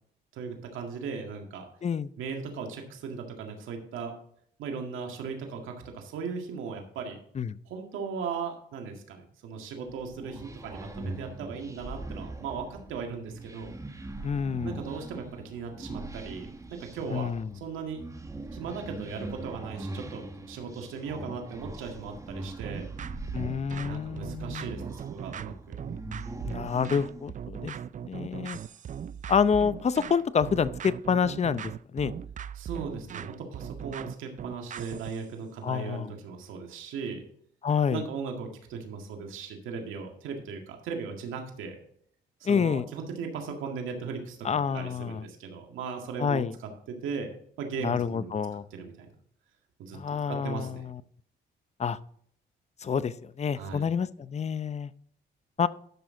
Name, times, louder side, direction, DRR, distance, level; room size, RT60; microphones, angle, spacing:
voice 1, 0.3-1.6 2.2-4.1 4.6-7.2 7.7-13.7 14.6-18.0 18.5-22.9 23.8-25.8 32.6-37.2 37.9-41.8 42.4-44.5 44.7-46.4 46.9-47.3 47.6-48.3 48.7-49.1 49.8-50.0 50.3-50.9 53.6-53.8, right 5 dB, 85° right, 3 dB, 1.9 m, -37 dB
voice 2, 1.8-2.1 7.3-7.6 14.2-14.8 17.1-17.5 23.3-24.8 26.4-27.7 28.0-28.6 29.3-32.1 35.6-36.1 37.6-38.0 42.4-42.9 44.4-45.2 46.2-46.5 47.8-48.6 49.9-51.0 51.8-52.0 52.8-54.9 55.6-55.7, left 6 dB, 35° left, 15 dB, 0.6 m, -28 dB
sound 1, 9.9-27.3, right 2 dB, 15° right, 1.1 m, -41 dB
sound 2, 22.6-35.2, right 8 dB, 40° right, 0.4 m, -39 dB
12.0 x 6.1 x 3.8 m, 0.64 s
cardioid pair, 90°, 20 cm